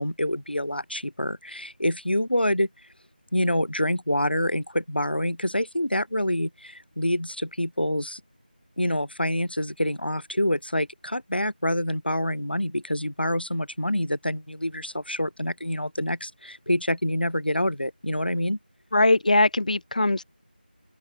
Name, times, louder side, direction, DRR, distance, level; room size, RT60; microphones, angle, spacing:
voice 1, 0.0-2.7 3.3-8.2 8.8-18.6, left 1 dB, 80° left, 1.9 m, -26 dB
voice 2, 18.9-20.2, left 2 dB, 50° left, 0.4 m, -20 dB
open air
figure-of-eight pair, 170°, 5 cm